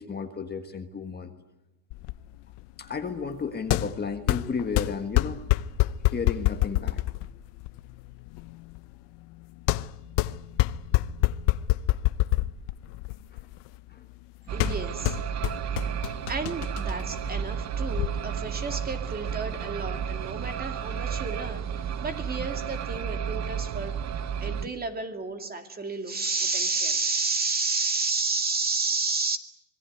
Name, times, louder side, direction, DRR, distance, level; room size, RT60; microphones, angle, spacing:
voice 1, 0.0-1.3 2.8-5.4 6.1-7.0 13.3-13.4 13.9-14.0 14.5-14.6 15.6-15.8 24.6-24.7, left 5 dB, 20° left, 5 dB, 1.6 m, -33 dB
sound 1, 1.9-18.1, left 17 dB, 60° left, 0.9 m, -28 dB
voice 2, 14.5-15.2 16.3-24.0 24.4-29.4, right 3 dB, 20° right, 6 dB, 2.4 m, -31 dB
sound 2, 14.5-24.7, right 8 dB, 35° right, 0.9 m, -32 dB
26.0 x 21.0 x 9.5 m, 0.91 s
cardioid pair, 145°, 47 cm